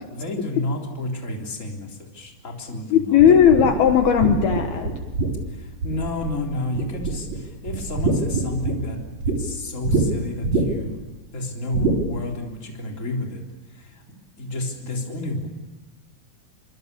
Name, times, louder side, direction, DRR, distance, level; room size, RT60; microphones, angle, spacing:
voice 1, 0.1-3.2 5.5-9.0 9.2-11.0 11.3-13.4 13.7-14.0 14.4-15.5, left 2 dB, 20° left, 0 dB, 3.4 m, -31 dB
voice 2, 2.9-4.9, left 8 dB, 65° left, 5 dB, 3.1 m, -16 dB
sound 1, 3.2-6.4 6.7-7.4 7.7-9.4 9.8-10.0 10.4-10.9 11.7-12.0, right 3 dB, 40° right, 4.9 m, -24 dB
26.5 x 24.5 x 6.9 m, 1.2 s
omnidirectional pair, 5.1 m